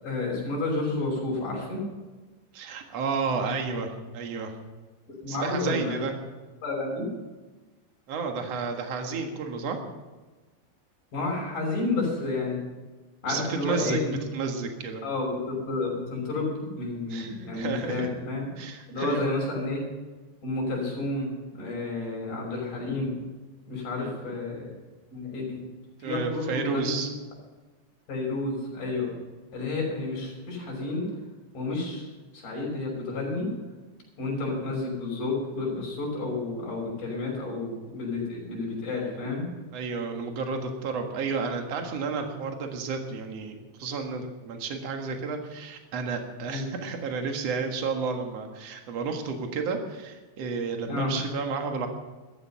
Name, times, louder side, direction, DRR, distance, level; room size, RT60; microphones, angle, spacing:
voice 1, 0.0-1.8 5.2-6.1 6.6-7.0 11.1-12.6 13.2-14.1 15.0-18.5 18.9-19.8 20.4-23.2 23.7-24.7 25.1-25.6 26.0-26.9 28.1-29.1 29.5-31.1 31.5-33.5 34.2-39.5 46.5-46.7 50.9-51.3, left 3 dB, 45° left, -2 dB, 6.9 m, -30 dB
voice 2, 2.5-4.5 5.3-6.1 8.1-9.8 13.2-15.0 17.1-18.1 18.6-19.3 21.9-22.2 24.0-24.1 26.0-27.1 28.9-29.2 39.7-51.9, right 4 dB, 60° right, 4 dB, 1.7 m, -31 dB
14.5 x 14.0 x 5.7 m, 1.2 s
omnidirectional pair, 5.4 m